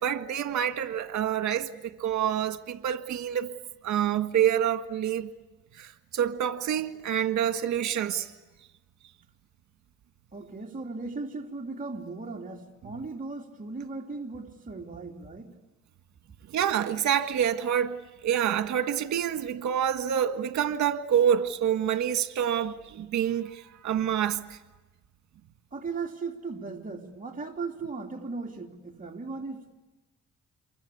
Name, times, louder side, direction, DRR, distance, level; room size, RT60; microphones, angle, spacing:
voice 1, 0.0-3.5 3.8-5.3 5.7-8.3 16.5-24.6, right 9 dB, 70° right, 1.8 m, -27 dB
voice 2, 10.3-15.5 25.7-29.7, right 4 dB, 25° right, 3.1 m, -37 dB
28.5 x 23.5 x 8.4 m
cardioid pair, 90°, 30 cm